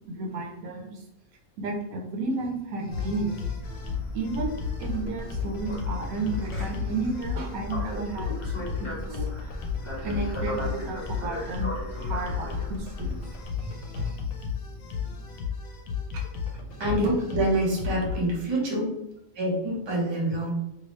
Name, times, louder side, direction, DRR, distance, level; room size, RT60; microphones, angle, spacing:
voice 1, 0.0-1.0 1.6-3.6 4.1-9.6 10.0-11.7 12.0-14.2 16.1-16.2 16.6-16.8 20.3-20.4, right 3 dB, 85° right, 1 dB, 1.2 m, -33 dB
sound 1, 2.9-18.2, left 6 dB, 75° left, 1.0 m, -34 dB
sound 2, 3.6-13.4, equal, 25° left, 0.8 m, -37 dB
voice 2, 16.8-18.8 19.4-20.5, right 1 dB, 25° right, -4 dB, 0.8 m, -26 dB
2.8 x 2.8 x 3.2 m, 0.87 s
omnidirectional pair, 1.4 m